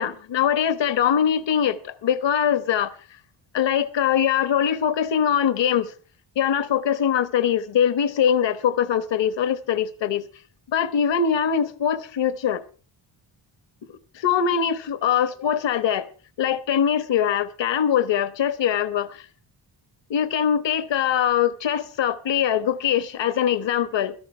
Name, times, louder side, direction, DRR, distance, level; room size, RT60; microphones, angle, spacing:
voice 1, 0.0-2.9 3.5-5.9 6.4-10.2 10.7-12.6 13.9-16.1 16.4-19.3 20.1-24.1, left 8 dB, 65° left, 1.2 m, -22 dB
17.0 x 13.5 x 4.3 m
wide cardioid pair, 120°, 48 cm